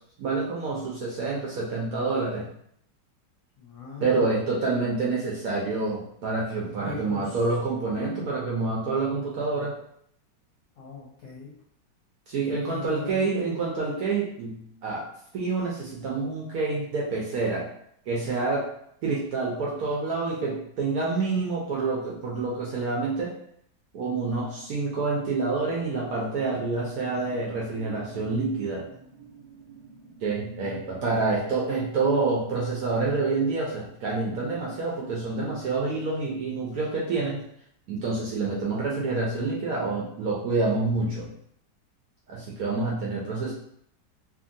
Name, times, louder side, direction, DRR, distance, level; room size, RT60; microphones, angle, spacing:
voice 1, 0.2-2.5 4.0-9.7 12.3-15.0 15.3-17.6 18.1-18.7 19.0-23.3 23.9-28.8 30.2-37.4 37.9-41.3 42.3-43.5, right 3 dB, 70° right, -4 dB, 0.9 m, -27 dB
voice 2, 3.6-4.3 6.8-7.4 10.8-11.5 12.4-13.3, left 4 dB, 65° left, -5 dB, 0.9 m, -40 dB
sound 1, 26.4-34.6 34.9-35.2, right 4 dB, 90° right, 1.3 m, -49 dB
2.8 x 2.6 x 2.6 m, 0.69 s
omnidirectional pair, 2.0 m